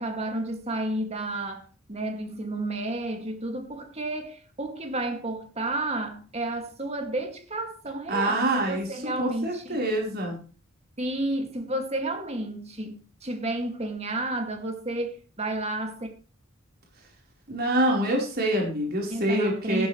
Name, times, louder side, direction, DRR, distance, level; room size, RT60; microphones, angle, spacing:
voice 1, 0.0-9.8 11.0-13.0 13.2-16.1 19.1-19.9, right 1 dB, 30° right, 2.3 m, -31 dB
voice 2, 8.1-10.4 17.5-19.9, right 1 dB, 50° right, 4.3 m, -26 dB
15.0 x 11.0 x 3.2 m
head